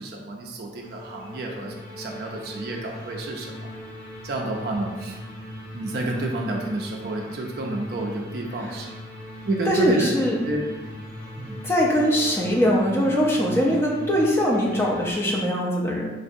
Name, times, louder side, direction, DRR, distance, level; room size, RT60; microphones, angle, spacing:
voice 1, 0.0-3.7 4.2-5.2 5.7-8.9 9.4-10.2 10.4-10.6 10.9-11.0 11.4-11.6, right 2 dB, 55° right, 0 dB, 0.4 m, -29 dB
sound 1, 0.8-15.1, left 1 dB, 30° left, 1.0 m, -40 dB
voice 2, 9.7-10.4 11.6-16.1, equal, 15° left, -3 dB, 0.4 m, -22 dB
3.9 x 2.6 x 2.5 m, 1.2 s
head